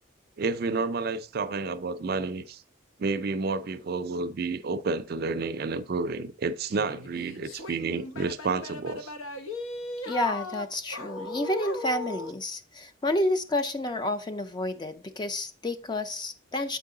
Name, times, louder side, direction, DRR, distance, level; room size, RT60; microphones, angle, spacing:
voice 1, 0.4-2.6 3.0-9.1, right 4 dB, 50° right, 0.4 m, -30 dB
sound 1, 6.7-12.4, left 2 dB, 85° left, 0.8 m, -38 dB
voice 2, 10.1-16.8, left 1 dB, 20° left, 0.4 m, -30 dB
7.3 x 4.6 x 3.7 m
head